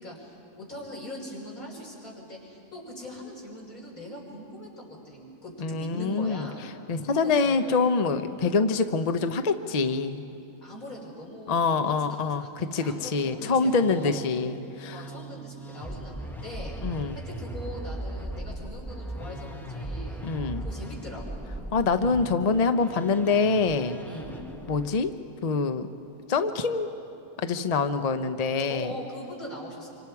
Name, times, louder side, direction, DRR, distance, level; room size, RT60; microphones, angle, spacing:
voice 1, 0.0-6.6 7.0-7.8 10.6-14.2 14.9-20.3 20.6-21.4 22.8-23.1 24.0-24.4 28.7-29.9, left 1 dB, 65° left, -4 dB, 5.4 m, -41 dB
voice 2, 5.6-6.5 6.9-10.2 11.5-15.0 16.8-17.2 20.2-20.6 21.7-24.0 24.7-25.1 25.4-25.9 26.3-26.9 27.4-28.9, left 4 dB, 40° left, 9 dB, 0.5 m, -25 dB
sound 1, 13.2-25.1, right 1 dB, ahead, 0.7 m, -39 dB
26.5 x 26.0 x 4.7 m, 2.7 s
omnidirectional pair, 1.5 m